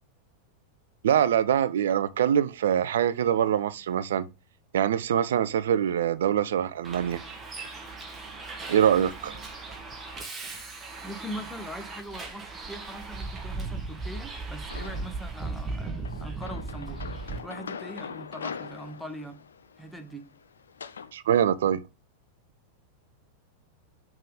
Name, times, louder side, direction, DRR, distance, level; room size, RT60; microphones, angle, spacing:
voice 1, 1.0-4.3 4.7-7.2 8.7-9.4 21.1-21.8, right 9 dB, 60° right, 0.4 m, -24 dB
Bus, 6.8-17.4, right 3 dB, 20° right, 1.3 m, -37 dB
voice 2, 11.0-15.9 16.2-17.0 17.4-19.4 19.8-20.4, equal, ahead, 0.9 m, -41 dB
sound 1, 14.7-15.3 16.0-21.1, left 6 dB, 70° left, 0.4 m, -41 dB
5.6 x 3.6 x 4.8 m
figure-of-eight pair, 90°, 0 cm